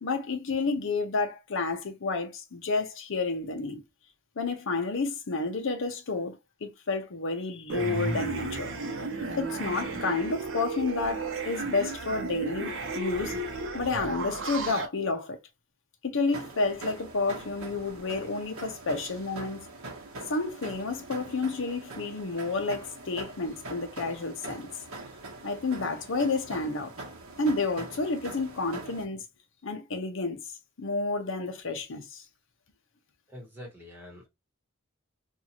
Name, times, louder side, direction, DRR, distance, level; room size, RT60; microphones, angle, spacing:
voice 1, 0.0-3.8 4.4-8.7 9.4-13.4 13.7-15.4 16.0-19.7 20.3-24.7 25.4-26.9 27.4-29.2 29.6-30.4 30.8-32.2, left 3 dB, 60° left, 0.7 m, -30 dB
sound 1, 7.7-14.9, right 3 dB, 60° right, 0.8 m, -33 dB
sound 2, 16.3-29.0, right 2 dB, 80° right, 1.0 m, -43 dB
voice 2, 33.3-34.3, left 1 dB, 10° right, 1.2 m, -45 dB
2.7 x 2.4 x 2.8 m
head